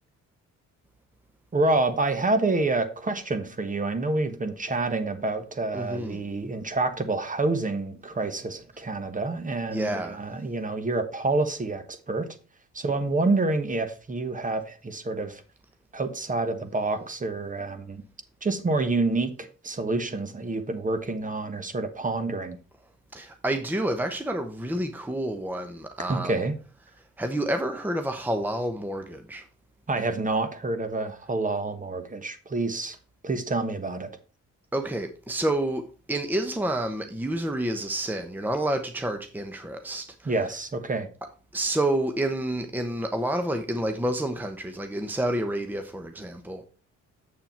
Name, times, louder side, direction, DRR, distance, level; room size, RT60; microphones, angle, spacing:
voice 1, 1.5-12.3 12.7-15.4 15.9-18.0 18.4-22.6 26.1-26.5 29.9-33.0 33.2-34.1 40.2-41.1, right 3 dB, 25° right, 1.3 m, -28 dB
voice 2, 5.7-6.2 9.7-10.2 23.1-26.3 27.2-29.4 34.7-35.8 36.1-40.3 41.5-46.6, right 1 dB, 5° right, 0.9 m, -29 dB
7.6 x 6.7 x 4.5 m
cardioid pair, 90°, 30 cm